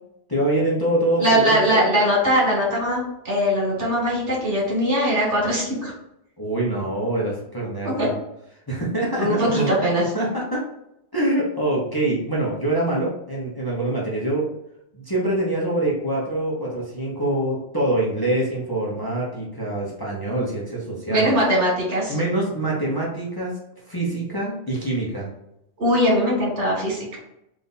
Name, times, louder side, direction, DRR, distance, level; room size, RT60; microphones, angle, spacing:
voice 1, 0.3-1.8 6.4-8.1 8.7-9.8 10.1-10.6 11.1-14.5 14.9-21.4 22.1-23.6 23.9-25.3, right 1 dB, 20° left, -5 dB, 0.9 m, -25 dB
voice 2, 1.2-5.9 7.8-8.1 9.2-10.0 21.1-22.1 25.8-27.2, equal, 75° right, -4 dB, 2.1 m, -21 dB
3.6 x 2.8 x 4.0 m, 0.82 s
omnidirectional pair, 1.2 m